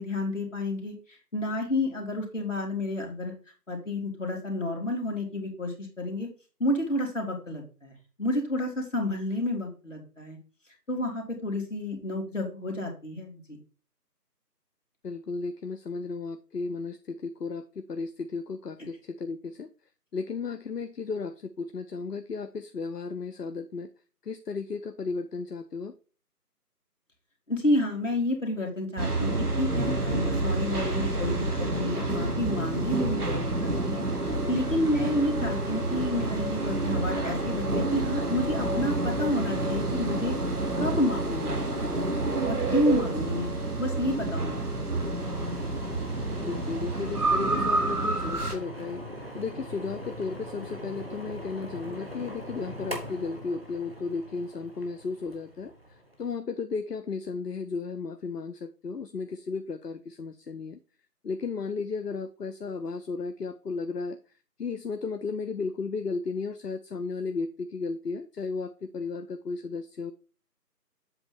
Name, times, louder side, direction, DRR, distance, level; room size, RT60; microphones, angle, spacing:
voice 1, 0.0-3.3 3.7-6.3 6.6-7.9 8.2-10.4 10.9-13.4 27.5-40.4 40.8-41.8 42.4-44.9, left 1 dB, 50° left, 0 dB, 2.2 m, -30 dB
voice 2, 15.0-19.7 20.1-23.9 24.2-25.9 46.4-49.0 49.3-55.7 56.2-60.8 61.2-64.2 64.6-70.1, left 4 dB, 70° left, 9 dB, 0.7 m, -34 dB
sound 1, 29.0-48.5, right 2 dB, 65° right, 1.5 m, -29 dB
sound 2, 45.2-56.3, equal, 40° right, 1.1 m, -41 dB
7.8 x 3.0 x 5.8 m, 0.36 s
figure-of-eight pair, 175°, 48 cm